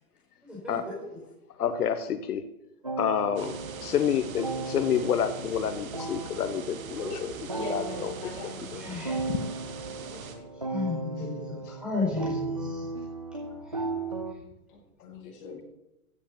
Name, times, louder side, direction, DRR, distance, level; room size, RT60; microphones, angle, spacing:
voice 1, 0.4-0.8 6.9-7.2 8.7-9.4 10.6-12.9 13.6-13.8, left 3 dB, ahead, -5 dB, 4.8 m, -34 dB
voice 2, 1.6-2.4 3.0-7.3 7.7-8.1 8.7-8.8 9.3-9.4 10.3-10.4 15.4-15.6, left 8 dB, 75° left, 10 dB, 1.2 m, -29 dB
sound 1, 2.8-14.3, right 3 dB, 25° right, 0.4 m, -36 dB
sound 2, 3.4-10.3, right 6 dB, 60° right, 2.6 m, -42 dB
voice 3, 7.5-8.7 14.7-15.6, left 3 dB, 35° left, -1 dB, 5.6 m, -42 dB
15.5 x 7.3 x 7.3 m, 0.91 s
hypercardioid pair, 175°, 45 cm